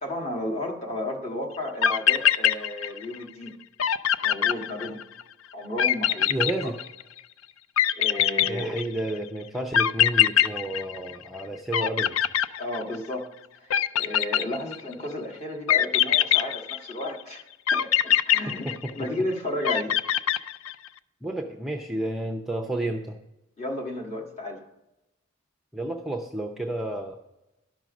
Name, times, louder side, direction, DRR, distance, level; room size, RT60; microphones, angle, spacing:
voice 1, 0.0-3.6 4.2-5.1 5.5-6.7 7.9-8.8 12.6-19.9 23.6-24.7, left 1 dB, 30° left, 0 dB, 1.5 m, -33 dB
sound 1, 1.5-1.6 1.8-3.2 3.5-3.6 3.8-5.2 5.8-7.2 7.8-9.1 9.7-11.4 11.7-13.1 13.7-14.9 15.7-17.1 17.7-19.2 19.6-20.9, left 10 dB, 90° left, 0.4 m, -23 dB
voice 2, 6.3-6.8 8.5-12.2 18.5-19.1 21.2-23.2 25.7-27.2, right 1 dB, ahead, 2 dB, 0.5 m, -31 dB
12.0 x 6.2 x 5.1 m, 0.93 s
head